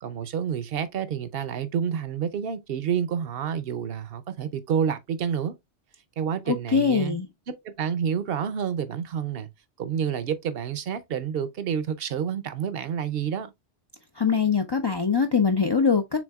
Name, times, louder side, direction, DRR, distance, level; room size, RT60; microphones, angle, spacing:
voice 1, 0.0-5.5 6.2-7.2 7.5-9.5 9.8-13.5, right 8 dB, 60° right, 0.8 m, -29 dB
voice 2, 6.5-7.3 14.2-16.2, left 5 dB, 45° left, 0.3 m, -22 dB
6.2 x 3.6 x 2.3 m
omnidirectional pair, 1.3 m